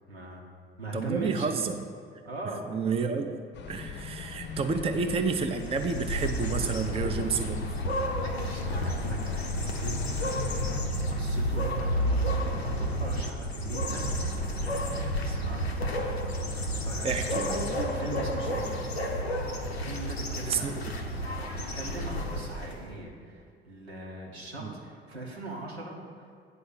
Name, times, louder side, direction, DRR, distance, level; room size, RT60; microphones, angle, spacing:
voice 1, 0.1-0.4 0.8-1.6 2.2-2.7 4.7-4.9 8.4-10.2 11.1-14.3 14.6-15.7 16.5-17.4 17.8-18.9 19.8-20.9 21.3-26.4, right 1 dB, 85° right, -2 dB, 1.2 m, -40 dB
voice 2, 0.9-1.8 2.7-3.3 3.7-7.6 17.0-17.6 20.5-20.9 24.6-24.7, right 5 dB, 20° right, 6 dB, 0.6 m, -30 dB
sound 1, 3.5-10.8, left 5 dB, 35° left, 0.7 m, -40 dB
sound 2, 5.6-22.9, equal, 90° left, 0.6 m, -31 dB
8.7 x 4.3 x 6.8 m, 2.2 s
figure-of-eight pair, 55°, 31 cm